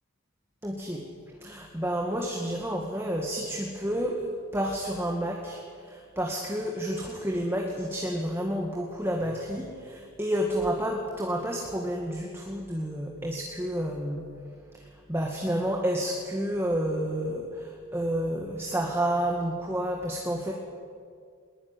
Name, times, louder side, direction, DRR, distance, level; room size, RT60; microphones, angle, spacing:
voice 1, 0.6-1.1 1.4-5.6 5.9-14.2 15.1-20.5, equal, 10° right, 0 dB, 2.1 m, -30 dB
21.0 x 20.5 x 9.8 m, 2.1 s
head